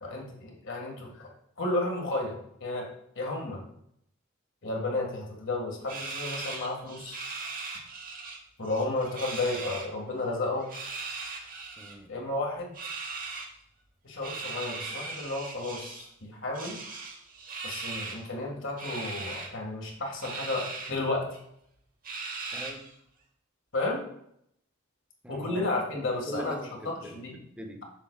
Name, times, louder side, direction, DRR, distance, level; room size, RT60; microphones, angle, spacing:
voice 1, 0.0-1.3 1.6-2.4 2.6-2.9 3.2-3.6 4.6-7.2 8.6-10.7 12.1-12.7 14.0-16.8 17.6-21.2 23.7-24.0 25.3-27.3, left 2 dB, 65° left, 0 dB, 1.8 m, -32 dB
sound 1, 5.9-8.4 8.6-9.9 10.6-11.9 12.7-13.5 14.2-16.1 16.5-18.2 18.8-19.5 20.2-20.9 21.3-21.4 22.0-22.9, right 3 dB, 45° right, 1.1 m, -38 dB
voice 2, 11.8-12.1 22.5-22.8 25.2-25.7 26.3-26.7 27.0-27.8, right 1 dB, 5° right, 3 dB, 0.8 m, -41 dB
7.2 x 6.8 x 2.3 m, 0.73 s
head